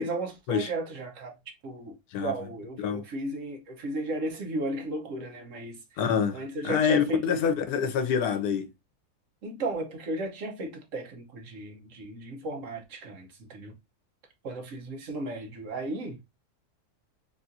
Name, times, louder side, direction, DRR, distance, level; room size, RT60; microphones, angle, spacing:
voice 1, 0.0-1.3 1.6-5.8 6.3-7.4 9.4-13.7 14.4-16.2, right 2 dB, 60° right, 1.1 m, -34 dB
voice 2, 6.0-8.7, left 7 dB, 80° left, 1.2 m, -26 dB
3.6 x 2.5 x 2.6 m
omnidirectional pair, 1.6 m